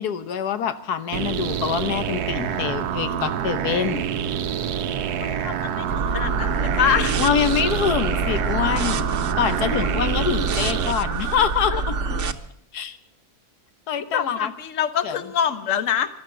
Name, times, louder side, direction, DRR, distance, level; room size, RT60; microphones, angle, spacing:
voice 1, 0.0-4.1 7.2-12.0 12.7-13.0 13.9-14.5 15.0-15.2, left 8 dB, 90° left, 11 dB, 1.5 m, -25 dB
sound 1, 1.1-10.9, right 9 dB, 85° right, 1.3 m, -27 dB
voice 2, 5.2-7.2 14.1-16.1, left 8 dB, 55° left, 12 dB, 1.4 m, -25 dB
sound 2, 5.9-12.3, right 4 dB, 55° right, 1.2 m, -26 dB
15.0 x 12.5 x 7.6 m, 0.70 s
omnidirectional pair, 1.6 m